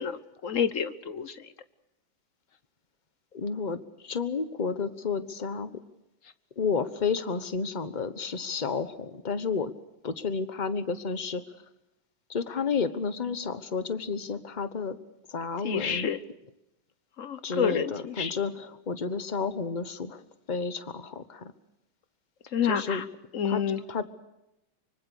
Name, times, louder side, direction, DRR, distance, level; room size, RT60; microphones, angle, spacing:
voice 1, 0.0-1.5 15.6-16.2 17.2-18.3 22.5-23.0 23.3-23.8, left 7 dB, 50° left, 14 dB, 1.2 m, -29 dB
voice 2, 3.3-5.8 6.6-9.7 10.0-11.4 12.3-15.0 15.3-16.1 17.4-20.2 20.5-21.5 22.6-23.0 23.4-23.6 23.9-24.0, left 5 dB, 30° left, 12 dB, 1.1 m, -31 dB
25.0 x 24.5 x 6.4 m, 0.88 s
omnidirectional pair, 2.1 m